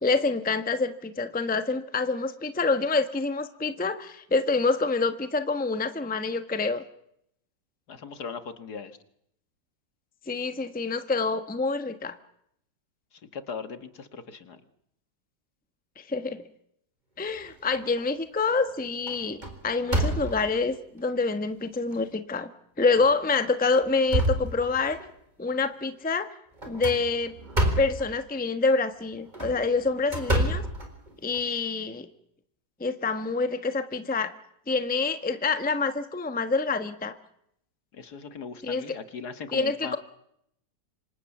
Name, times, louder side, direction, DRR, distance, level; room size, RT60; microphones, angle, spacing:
voice 1, 0.0-6.8 10.3-12.2 16.0-16.4 17.2-22.5 22.8-25.0 25.4-26.3 26.7-27.3 27.8-30.6 31.2-32.1 32.8-34.3 34.7-37.2 38.6-38.8 39.5-40.0, left 4 dB, 5° left, 10 dB, 1.0 m, -27 dB
voice 2, 7.9-9.0 13.3-14.6 37.9-40.0, left 6 dB, 60° left, 11 dB, 2.1 m, -39 dB
sound 1, 17.4-18.0 18.5-18.7 19.1-20.6 21.3-21.4 21.9-22.0 22.9-23.2 23.6-25.1 26.6-28.1 29.2-31.4, right 1 dB, 25° right, 4.5 m, -28 dB
26.5 x 25.0 x 7.3 m, 0.76 s
omnidirectional pair, 2.0 m